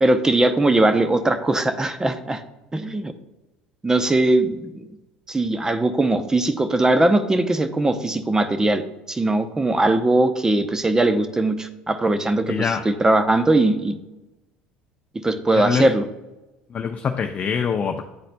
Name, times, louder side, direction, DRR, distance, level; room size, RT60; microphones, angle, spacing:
voice 1, 0.0-2.4 2.7-3.1 3.8-4.8 5.3-8.8 9.1-13.9 15.2-16.1, right 2 dB, 15° right, 10 dB, 0.6 m, -20 dB
voice 2, 12.5-12.8 15.5-15.9 16.7-18.0, left 6 dB, 35° left, 4 dB, 0.5 m, -24 dB
10.5 x 4.1 x 2.2 m, 1.0 s
supercardioid pair, 90°, 4 cm